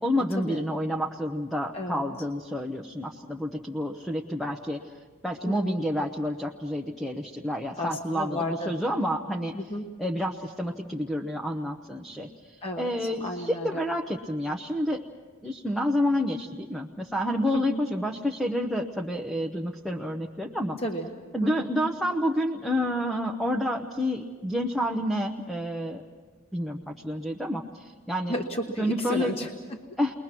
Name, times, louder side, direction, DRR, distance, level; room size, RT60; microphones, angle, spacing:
voice 1, 0.0-4.9 5.2-9.5 10.0-15.1 15.4-20.8 21.3-26.0 26.5-26.8 27.0-28.3 28.8-29.4 30.0-30.1, equal, ahead, 3 dB, 0.7 m, -29 dB
voice 2, 1.7-2.0 5.5-5.8 7.8-8.7 9.5-9.9 12.6-13.8 17.5-17.8 20.8-21.1 21.4-21.7 28.3-29.8, equal, 25° left, 2 dB, 1.2 m, -33 dB
29.5 x 21.5 x 6.0 m, 1.5 s
head